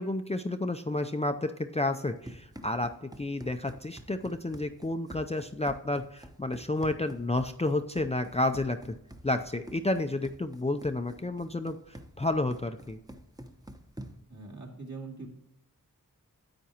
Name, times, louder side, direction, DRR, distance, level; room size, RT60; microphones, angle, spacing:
voice 1, 0.0-9.0 9.2-13.0, left 2 dB, 20° left, 6 dB, 0.5 m, -31 dB
Run, 1.9-14.4, right 1 dB, 10° right, 0.9 m, -49 dB
voice 2, 14.3-15.3, right 3 dB, 55° right, -2 dB, 2.7 m, -42 dB
10.5 x 8.2 x 2.9 m, 0.79 s
cardioid pair, 45°, 35 cm